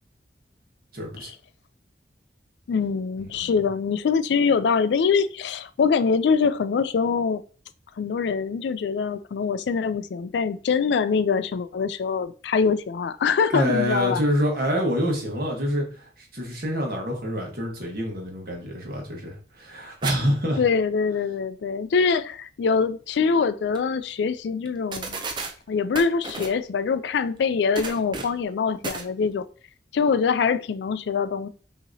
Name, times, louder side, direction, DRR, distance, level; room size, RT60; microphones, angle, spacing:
voice 1, 0.9-1.3 3.4-3.5 13.5-20.6, equal, 55° right, 1.4 m, -26 dB
voice 2, 2.7-7.4 8.0-14.2 20.6-25.2 25.7-29.4 29.9-31.5, left 5 dB, 75° left, 0.3 m, -24 dB
sound 1, 20.0-20.2 20.5-20.6 23.3-23.4 23.7-23.8 24.7-24.8 24.9-25.5 25.9-26.6 27.7-28.4 28.8-29.1, right 4 dB, 25° right, 0.4 m, -32 dB
5.6 x 2.9 x 2.7 m
head